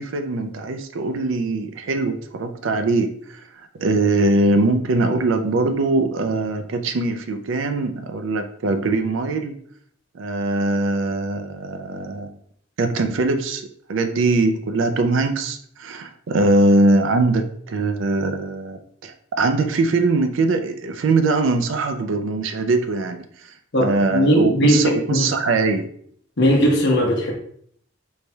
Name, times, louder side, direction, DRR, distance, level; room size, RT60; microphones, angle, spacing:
voice 1, 0.0-9.6 10.1-12.3 12.8-13.6 13.9-23.5 23.8-25.9, right 2 dB, 70° right, 7 dB, 0.4 m, -21 dB
voice 2, 23.7-25.3 26.4-27.3, equal, 60° left, 0 dB, 0.9 m, -18 dB
4.0 x 3.3 x 2.2 m, 0.63 s
head